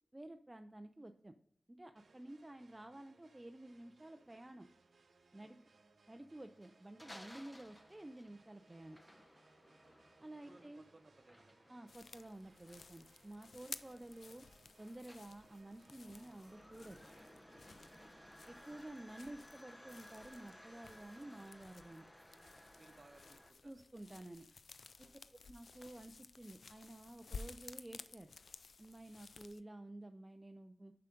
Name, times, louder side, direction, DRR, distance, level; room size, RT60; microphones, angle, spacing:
voice 1, 0.1-1.3 1.7-4.7 5.3-5.6 6.1-9.0 10.2-10.8 11.7-14.5 14.8-17.0 18.5-22.1 23.6-24.5 25.5-28.3 28.8-30.9, right 1 dB, 20° right, 6 dB, 0.4 m, -52 dB
sound 1, 2.0-18.9, right 3 dB, 75° right, 0.8 m, -69 dB
sound 2, 6.6-23.5, equal, 10° left, 0.7 m, -60 dB
voice 2, 10.5-11.6 18.0-18.1 22.7-23.9 25.0-25.3, right 2 dB, 40° right, 7 dB, 0.9 m, -64 dB
sound 3, 11.9-29.6, left 4 dB, 80° left, 0.4 m, -55 dB
7.0 x 5.7 x 3.8 m, 0.62 s
wide cardioid pair, 105°, 0 cm